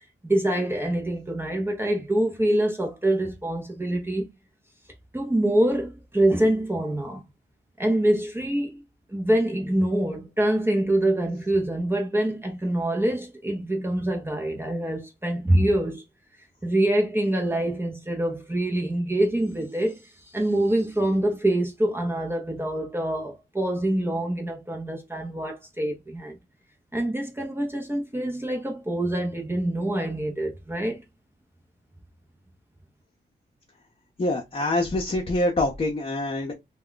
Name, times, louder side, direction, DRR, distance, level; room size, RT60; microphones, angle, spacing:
voice 1, 0.2-4.3 5.1-7.2 7.8-8.8 9.1-16.0 16.6-26.4 26.9-31.0, right 1 dB, 10° right, 0.7 m, -25 dB
voice 2, 34.2-36.5, left 2 dB, 30° left, 0.8 m, -25 dB
2.2 x 2.2 x 3.8 m
cardioid pair, 75°, 19 cm